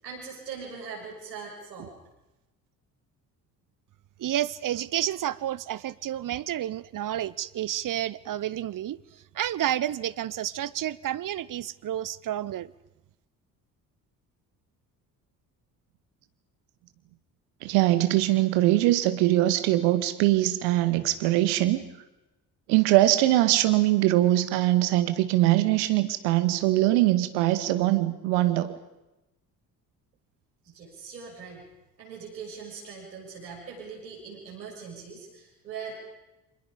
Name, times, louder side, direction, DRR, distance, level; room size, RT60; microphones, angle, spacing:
voice 1, 0.0-2.0 30.7-31.7 32.0-36.0, right 5 dB, 80° right, -2 dB, 7.1 m, -41 dB
voice 2, 4.2-9.0 9.3-12.7, right 12 dB, 40° right, 20 dB, 0.9 m, -30 dB
voice 3, 17.6-21.8 22.7-28.7, right 15 dB, 65° right, 12 dB, 1.9 m, -22 dB
30.0 x 26.5 x 5.2 m, 0.98 s
figure-of-eight pair, 45°, 50 cm